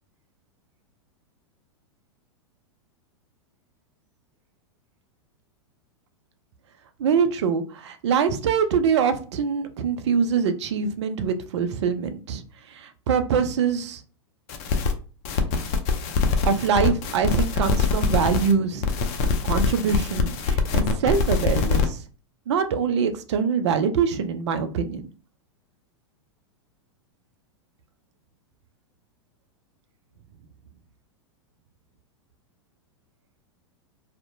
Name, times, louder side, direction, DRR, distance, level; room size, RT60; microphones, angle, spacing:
voice 1, 7.0-14.0 16.4-18.8 19.4-22.0 22.5-25.1, right 6 dB, 70° right, 9 dB, 0.4 m, -24 dB
sound 1, 14.5-14.9 15.2-18.5 18.8-21.8, left 4 dB, 45° left, 0.5 m, -23 dB
2.6 x 2.1 x 2.5 m, 0.37 s
hypercardioid pair, 105°, 15 cm